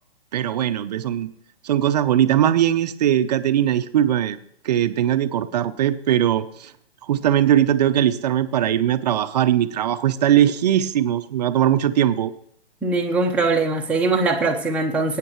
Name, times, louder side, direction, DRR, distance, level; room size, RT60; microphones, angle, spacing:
voice 1, 0.3-1.3 1.6-4.4 4.6-6.7 7.1-12.3, right 11 dB, 40° right, 11 dB, 0.7 m, -20 dB
voice 2, 12.8-15.2, right 3 dB, 5° right, -1 dB, 0.9 m, -21 dB
20.5 x 9.1 x 3.1 m, 0.71 s
hypercardioid pair, 140°, 32 cm